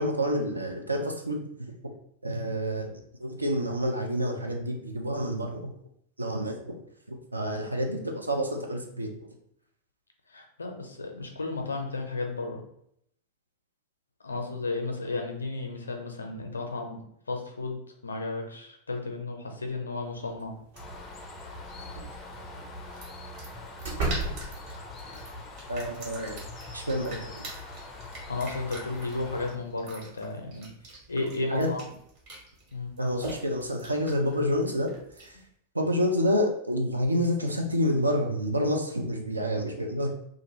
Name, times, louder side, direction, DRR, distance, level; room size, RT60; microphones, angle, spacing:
voice 1, 0.0-1.7 2.2-5.7 6.2-6.6 7.1-9.1 25.7-26.4 26.7-27.3 31.5-31.7 33.0-34.9 35.2-35.4 35.7-40.1, equal, 85° right, 2 dB, 0.5 m, -28 dB
voice 2, 10.3-12.6 14.2-17.0 17.3-20.5 28.3-30.7 31.1-31.8 32.7-32.9, left 3 dB, 75° left, 3 dB, 0.5 m, -33 dB
sound 1, 20.4-20.5 20.7-21.2 21.8-22.6 23.3-23.4 23.8-25.4, right 2 dB, 65° right, 1.1 m, -33 dB
sound 2, 20.6-35.5, right 2 dB, 45° right, 1.3 m, -46 dB
Bird, 20.8-29.6, left 2 dB, 25° left, 0.4 m, -43 dB
2.5 x 2.5 x 3.0 m, 0.71 s
figure-of-eight pair, 90°, 0 cm